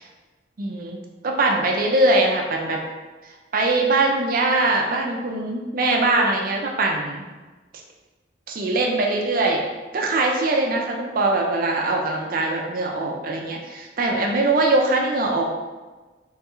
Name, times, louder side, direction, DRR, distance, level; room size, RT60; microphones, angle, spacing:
voice 1, 0.6-1.0 1.2-2.8 3.5-7.2 8.5-9.6 9.9-15.4, right 2 dB, 50° right, 1 dB, 0.4 m, -22 dB
3.1 x 2.3 x 2.9 m, 1.3 s
head